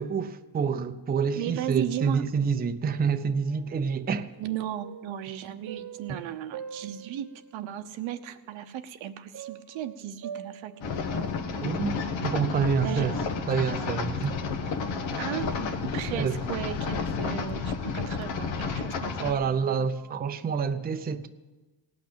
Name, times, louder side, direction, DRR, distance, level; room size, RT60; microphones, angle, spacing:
voice 1, 0.0-4.3 6.1-6.2 11.6-11.9 12.2-13.1 13.5-14.4 16.1-16.4 19.2-21.3, right 6 dB, 20° right, 0.5 m, -27 dB
voice 2, 1.4-2.2 4.4-10.7 12.8-13.1 15.2-15.5 15.9-19.7, right 11 dB, 85° right, 0.9 m, -36 dB
sound 1, 3.2-7.8 8.3-8.4 9.3-18.4 18.8-20.7, right 8 dB, 45° right, 1.0 m, -47 dB
sound 2, 10.8-19.3, left 5 dB, 75° left, 1.1 m, -31 dB
18.0 x 6.0 x 8.5 m
cardioid pair, 125°, 46 cm